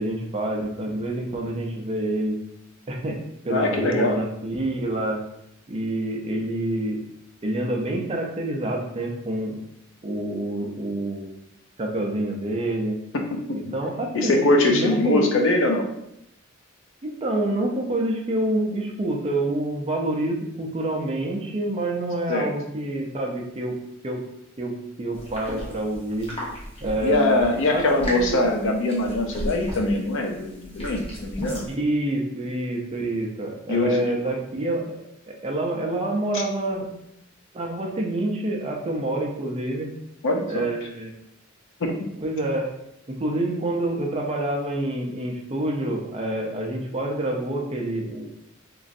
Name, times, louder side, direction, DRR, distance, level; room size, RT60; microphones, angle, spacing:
voice 1, 0.0-2.4 2.9-3.2 3.4-5.2 5.7-7.0 7.4-9.6 10.0-11.3 11.8-13.0 13.5-14.4 14.7-15.3 17.0-23.8 24.0-24.2 24.6-26.3 26.8-28.4 31.7-35.0 35.3-36.9 37.5-39.9 40.5-41.2 42.2-42.7 43.2-48.3, right 1 dB, 30° right, 1 dB, 0.4 m, -27 dB
voice 2, 3.5-4.2 13.3-13.6 14.1-15.9 22.3-22.5 27.0-31.7 33.7-34.2 36.3-36.4 40.2-40.7 41.8-42.1, left 2 dB, 65° left, 3 dB, 0.5 m, -22 dB
sound 1, 25.1-31.7, equal, 30° left, 0.9 m, -36 dB
3.0 x 2.5 x 2.5 m, 0.78 s
head